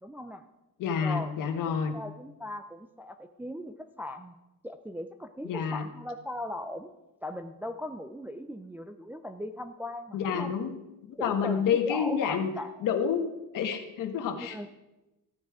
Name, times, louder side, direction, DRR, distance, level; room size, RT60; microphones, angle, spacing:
voice 1, 0.0-0.4 1.0-4.4 4.6-6.9 7.2-10.5 11.2-12.9 14.4-14.7, left 1 dB, 5° right, 7 dB, 0.3 m, -39 dB
voice 2, 0.8-1.9 5.4-5.8 10.1-10.8 11.0-12.5 12.8-14.7, left 7 dB, 65° left, 6 dB, 1.5 m, -29 dB
14.5 x 9.4 x 4.8 m, 0.99 s
cardioid pair, 170°, 35 cm